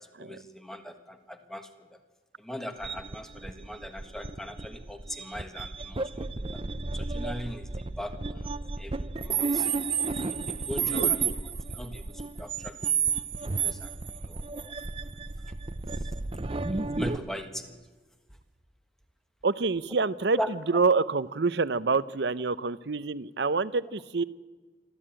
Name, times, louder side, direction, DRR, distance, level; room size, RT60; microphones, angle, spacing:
voice 1, 0.0-1.9 2.4-6.6 6.9-9.7 10.1-11.5 11.7-12.9 13.4-13.9 14.2-14.8 15.9-16.1 16.5-17.8 20.4-20.5, equal, ahead, 7 dB, 1.4 m, -40 dB
sound 1, 2.8-17.2, right 5 dB, 30° right, 0.7 m, -32 dB
voice 2, 10.9-11.4 19.4-24.2, right 4 dB, 65° right, 16 dB, 0.7 m, -27 dB
26.5 x 13.0 x 8.9 m, 1.3 s
head